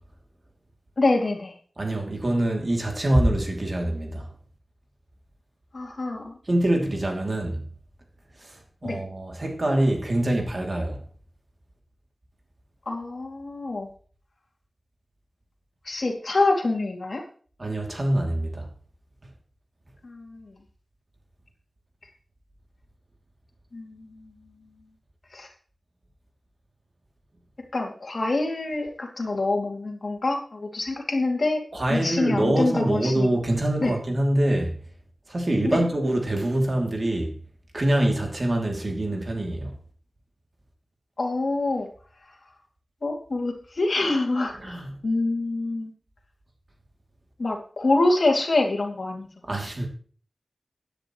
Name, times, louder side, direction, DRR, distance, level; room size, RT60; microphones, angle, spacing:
voice 1, 1.0-1.5 5.7-6.3 8.8-9.0 12.9-13.9 15.9-17.2 20.0-20.5 23.7-24.0 25.3-25.5 27.7-31.6 31.9-33.3 33.8-33.9 35.6-35.8 41.2-41.9 43.0-45.9 47.4-49.3, left 2 dB, 60° left, 2.6 m, -26 dB
voice 2, 1.8-4.3 6.5-7.6 8.4-11.0 17.6-18.7 31.7-34.8 35.3-37.4 37.7-39.7 44.5-45.0 49.5-49.9, right 1 dB, 40° right, 2.7 m, -25 dB
16.0 x 10.0 x 3.1 m
wide cardioid pair, 90°, 0 cm